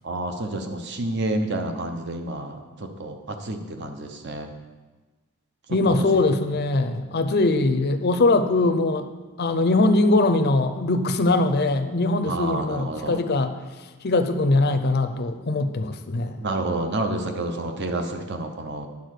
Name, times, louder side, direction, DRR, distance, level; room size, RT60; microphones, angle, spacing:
voice 1, 0.0-4.5 5.9-6.2 12.2-13.2 16.4-18.9, right 2 dB, 50° right, 5 dB, 0.8 m, -29 dB
voice 2, 5.7-9.1 9.4-13.5 14.0-16.5, left 2 dB, 50° left, 9 dB, 0.6 m, -21 dB
9.6 x 4.3 x 6.5 m, 1.3 s
head